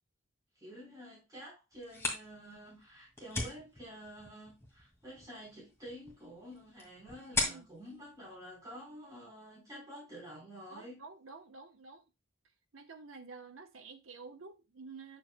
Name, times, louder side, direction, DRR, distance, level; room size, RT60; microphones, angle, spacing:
voice 1, 0.5-11.1, equal, 20° right, 4.2 m, -49 dB
sound 1, 1.7-9.3, left 2 dB, 15° left, 2.1 m, -41 dB
voice 2, 7.3-7.7 10.7-12.0 12.7-15.2, right 4 dB, 90° right, 1.0 m, -50 dB
9.1 x 7.1 x 2.2 m
head